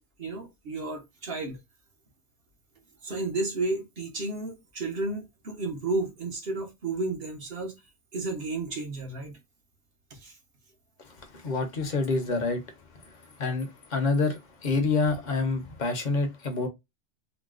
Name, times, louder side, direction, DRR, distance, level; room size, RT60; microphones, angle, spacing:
voice 1, 0.2-1.6 3.0-7.8 8.1-9.3 10.1-10.4, right 3 dB, 55° right, 1.1 m, -32 dB
voice 2, 11.0-16.7, left 3 dB, 45° left, 0.8 m, -28 dB
3.8 x 2.1 x 2.4 m
omnidirectional pair, 1.2 m